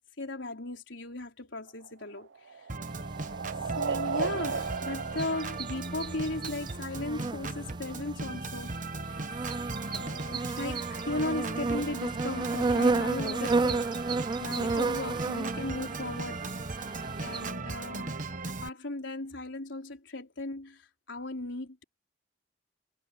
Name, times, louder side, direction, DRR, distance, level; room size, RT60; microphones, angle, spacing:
voice 1, 0.2-2.3 3.8-8.7 9.0-9.2 9.9-16.5 16.8-16.9 17.2-20.8 21.1-21.8, left 2 dB, 85° left, 4.2 m, -37 dB
sound 1, 1.7-6.4, right 5 dB, 75° right, 0.6 m, -35 dB
Organ, 2.7-18.7, right 3 dB, 45° right, 1.2 m, -38 dB
sound 2, 2.9-17.5, right 3 dB, 25° right, 0.4 m, -33 dB
head